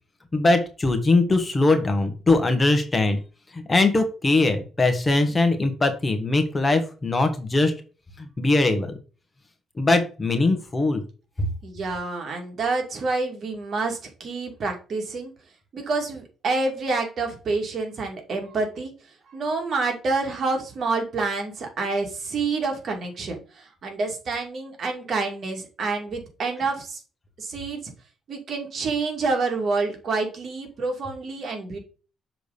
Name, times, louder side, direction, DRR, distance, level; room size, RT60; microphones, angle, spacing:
voice 1, 0.3-3.2 3.5-7.7 8.2-9.0 9.8-11.0, left 2 dB, 25° left, 7 dB, 1.5 m, -21 dB
voice 2, 11.6-15.3 15.7-18.9 19.3-27.0 27.4-27.9 28.3-31.8, right 3 dB, 55° right, 2 dB, 2.5 m, -28 dB
6.8 x 3.8 x 5.1 m, 0.35 s
cardioid pair, 90°, 0 cm